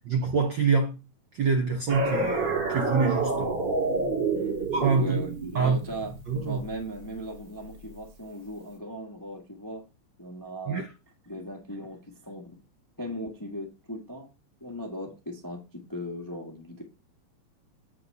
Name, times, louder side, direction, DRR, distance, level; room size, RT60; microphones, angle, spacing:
voice 1, 0.0-0.9 1.3-3.6 4.7-5.2 5.5-5.8 6.3-6.6 10.7-10.9, right 5 dB, 80° right, 1.0 m, -25 dB
sound 1, 1.9-7.2, right 3 dB, 40° right, 2.3 m, -29 dB
voice 2, 4.3-6.1 6.4-9.8 10.2-10.9 11.3-12.6 13.0-14.3 14.6-16.8, equal, 20° left, 0.5 m, -38 dB
7.8 x 3.7 x 6.6 m
omnidirectional pair, 3.3 m